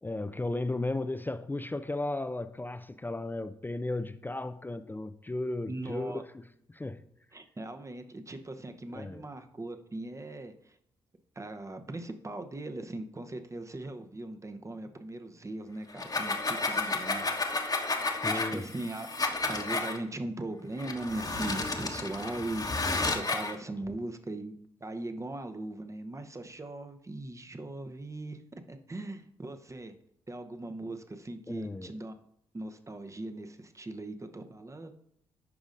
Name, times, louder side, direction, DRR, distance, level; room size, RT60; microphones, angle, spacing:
voice 1, 0.0-6.1 6.7-7.0 8.9-9.3 18.2-18.6 31.5-31.9, left 2 dB, 15° left, 0.4 m, -35 dB
voice 2, 5.7-6.2 7.3-10.8 11.4-17.2 18.3-19.1 19.4-28.4 28.7-30.0 30.3-32.1 32.5-34.9, right 2 dB, 25° right, 0.8 m, -39 dB
sound 1, 15.9-20.0 20.8-23.5, left 3 dB, 30° left, 1.1 m, -32 dB
10.5 x 5.0 x 2.6 m
hypercardioid pair, 40°, 12 cm